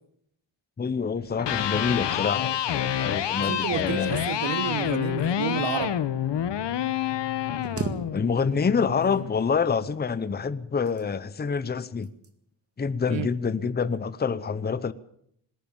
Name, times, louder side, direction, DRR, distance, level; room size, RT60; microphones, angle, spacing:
voice 1, 0.8-4.1 8.1-12.1 12.8-14.9, left 5 dB, 20° left, 0.8 m, -27 dB
Electric guitar, 1.3-9.4, left 10 dB, 65° left, 1.1 m, -28 dB
voice 2, 3.4-6.0 13.1-13.3, right 9 dB, 70° right, 1.1 m, -30 dB
sound 1, 7.6-8.7 9.0-9.7 10.6-11.4 12.0-12.4 12.8-13.1, right 4 dB, 30° right, 1.9 m, -36 dB
20.5 x 18.0 x 7.2 m
wide cardioid pair, 155°, 46 cm